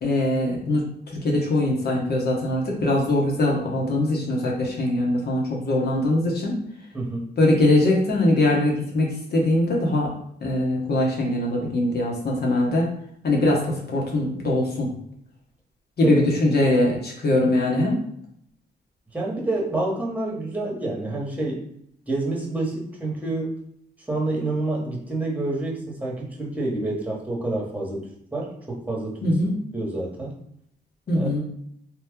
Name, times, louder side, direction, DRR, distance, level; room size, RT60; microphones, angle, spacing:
voice 1, 0.0-0.8 1.2-6.6 7.4-10.1 10.4-12.9 13.2-14.9 16.0-18.0 29.2-29.5 31.1-31.4, left 1 dB, 60° left, -2 dB, 1.1 m, -22 dB
voice 2, 6.9-7.3 16.0-16.2 19.1-21.7 22.1-23.6 24.1-28.1 28.3-29.4 29.7-30.4 31.1-31.3, right 2 dB, 10° right, -2 dB, 1.2 m, -28 dB
3.0 x 2.3 x 3.6 m, 0.72 s
cardioid pair, 70°, 18 cm